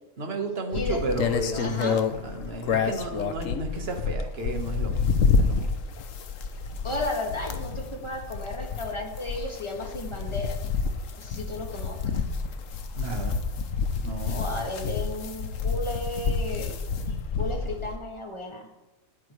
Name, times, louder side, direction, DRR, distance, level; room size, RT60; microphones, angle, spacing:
voice 1, 0.2-5.1 5.4-5.6 12.9-13.4 14.0-14.4, right 2 dB, 45° right, 3 dB, 1.7 m, -33 dB
sound 1, 0.7-18.0, left 5 dB, 65° left, 1.2 m, -29 dB
voice 2, 1.6-2.0 6.8-10.6 11.2-12.2 14.3-16.7 17.4-18.7, left 2 dB, 20° left, 0 dB, 2.0 m, -34 dB
19.5 x 9.0 x 3.3 m, 1.0 s
omnidirectional pair, 1.5 m